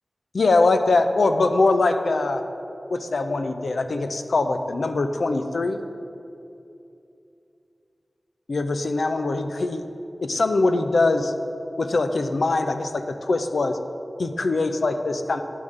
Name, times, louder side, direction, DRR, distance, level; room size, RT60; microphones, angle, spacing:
voice 1, 0.3-2.4 2.9-5.8 8.5-9.8 10.2-11.3 11.8-13.8 14.2-15.4, left 3 dB, 85° left, 7 dB, 0.5 m, -22 dB
10.5 x 3.5 x 6.5 m, 2.7 s
cardioid pair, 45°, 0 cm